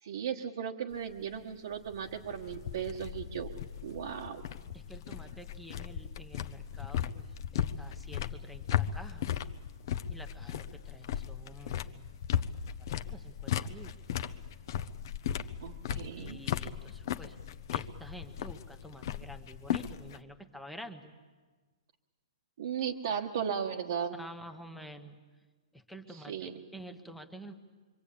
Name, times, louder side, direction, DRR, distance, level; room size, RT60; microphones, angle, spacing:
voice 1, 0.0-3.5 3.8-4.4 15.6-16.4 22.6-24.2 26.1-26.5, right 8 dB, 50° right, -1 dB, 1.5 m, -36 dB
sound 1, 0.9-20.2, left 10 dB, 40° left, 0.9 m, -37 dB
voice 2, 4.7-9.3 10.1-12.2 12.9-13.9 16.1-17.4 17.7-21.1 24.2-25.2 25.7-27.5, equal, ahead, 5 dB, 1.1 m, -49 dB
26.0 x 24.5 x 8.6 m, 1.3 s
hypercardioid pair, 170°, 3 cm